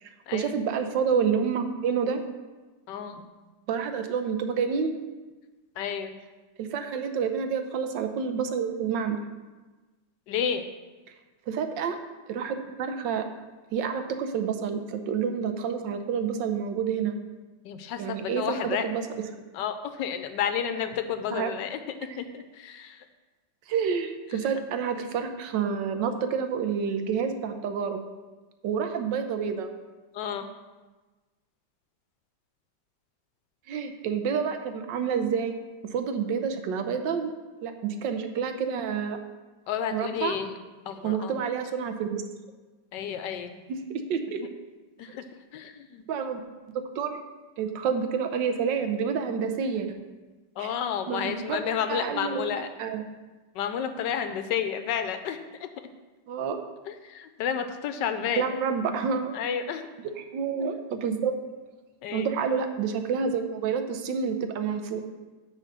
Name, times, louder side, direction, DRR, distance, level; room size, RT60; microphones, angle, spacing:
voice 1, 0.0-2.2 3.7-4.9 6.6-9.2 11.5-12.0 12.3-13.2 13.7-17.1 18.0-19.0 21.3-21.5 23.7-28.0 28.6-29.7 33.7-35.5 35.9-37.3 37.6-39.2 39.9-40.4 41.0-42.2 43.7-44.4 46.1-46.4 46.9-47.2 47.6-49.9 50.6-50.7 51.1-53.0 56.3-56.6 58.4-59.3 60.2-61.3 62.1-65.0, right 6 dB, 80° right, 7 dB, 1.4 m, -28 dB
voice 2, 2.9-3.3 5.8-6.1 10.3-10.6 17.6-18.8 19.5-21.8 22.2-23.1 30.1-30.5 39.7-40.6 40.8-41.4 42.9-43.5 45.0-45.2 45.5-46.0 50.6-52.7 53.5-55.7 56.9-58.5 59.3-59.9 62.0-62.3, left 8 dB, 80° left, 9 dB, 1.2 m, -31 dB
9.9 x 3.8 x 6.5 m, 1.2 s
omnidirectional pair, 2.0 m